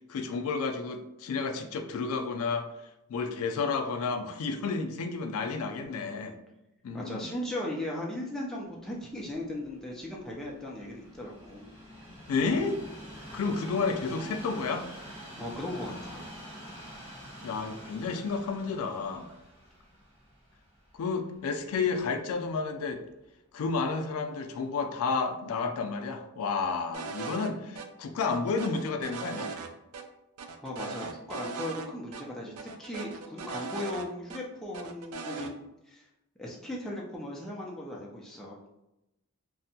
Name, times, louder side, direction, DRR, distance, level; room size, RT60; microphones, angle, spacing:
voice 1, 0.1-2.7 3.1-6.4 6.8-7.3 12.3-12.8 13.3-14.9 17.4-19.3 20.9-23.0 23.5-29.5, left 4 dB, 80° left, 6 dB, 0.3 m, -31 dB
voice 2, 6.9-11.7 15.4-16.3 30.6-35.5 35.9-36.1 36.4-38.6, left 1 dB, ahead, -4 dB, 0.3 m, -37 dB
Train, 9.0-22.2 22.9-23.0, equal, 25° right, 1.0 m, -47 dB
sound 1, 26.9-27.5 27.7-27.9 28.2-29.7 29.9-30.0 30.4-31.9 32.1-32.2 32.6-34.4 34.7-35.5, right 5 dB, 85° right, 0.3 m, -39 dB
2.6 x 2.1 x 2.7 m, 0.90 s
head